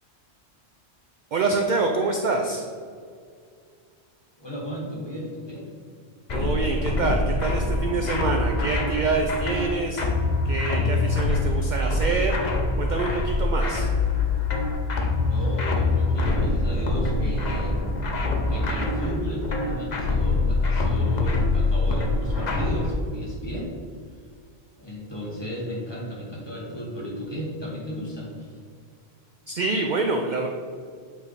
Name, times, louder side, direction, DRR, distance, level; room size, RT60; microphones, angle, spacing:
voice 1, 1.3-2.6 6.3-10.0 10.4-12.4 12.8-13.9 29.5-30.5, right 3 dB, 55° right, 3 dB, 0.5 m, -26 dB
voice 2, 4.4-5.7 15.2-17.9 18.5-23.7 24.8-28.6, equal, 25° left, -5 dB, 1.6 m, -34 dB
sound 1, 6.3-22.9, left 2 dB, 45° left, 0.8 m, -24 dB
8.3 x 3.3 x 4.0 m, 2.2 s
omnidirectional pair, 1.1 m